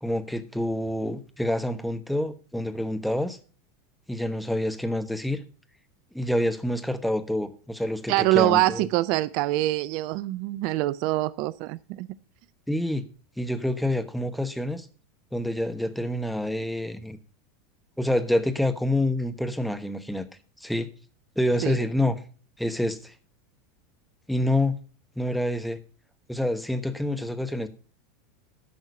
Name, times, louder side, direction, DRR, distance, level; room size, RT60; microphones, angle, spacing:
voice 1, 0.0-3.4 4.1-5.4 6.1-8.8 12.7-13.0 13.4-14.9 15.3-17.2 18.0-20.3 20.6-20.9 21.4-22.2 22.6-23.1 24.3-24.8 25.2-25.8 26.3-27.7, left 1 dB, ahead, 1.1 m, -27 dB
voice 2, 8.1-12.1 21.6-21.8, right 17 dB, 55° right, 0.4 m, -24 dB
11.0 x 6.3 x 5.3 m
hypercardioid pair, 85°, 0 cm